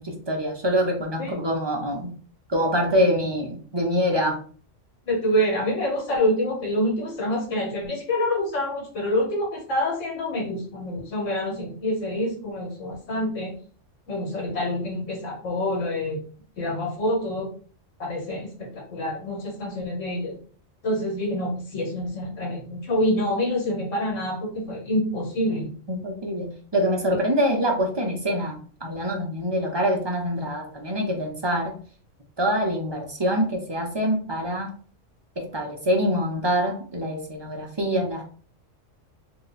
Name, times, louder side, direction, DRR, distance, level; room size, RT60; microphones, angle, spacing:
voice 1, 0.0-2.1 2.5-4.4 25.9-31.7 32.4-34.7 35.4-38.2, equal, 45° right, 1 dB, 0.3 m, -25 dB
voice 2, 5.0-13.6 14.1-16.2 16.6-17.5 18.0-20.4 20.8-25.7, left 1 dB, 75° left, 0 dB, 1.5 m, -26 dB
2.8 x 2.2 x 3.9 m, 0.42 s
omnidirectional pair, 1.3 m